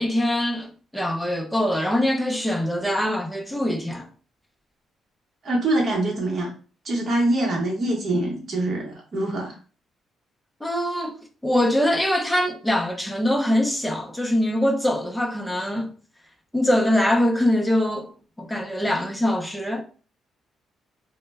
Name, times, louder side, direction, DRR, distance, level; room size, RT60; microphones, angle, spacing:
voice 1, 0.0-4.1 10.6-11.2 11.4-15.9 16.5-18.1 18.4-19.8, left 1 dB, 5° left, 0.5 m, -23 dB
voice 2, 5.4-6.5 6.8-9.5, right 1 dB, 45° right, 0.9 m, -24 dB
2.1 x 2.1 x 3.3 m
cardioid pair, 90°, 0 cm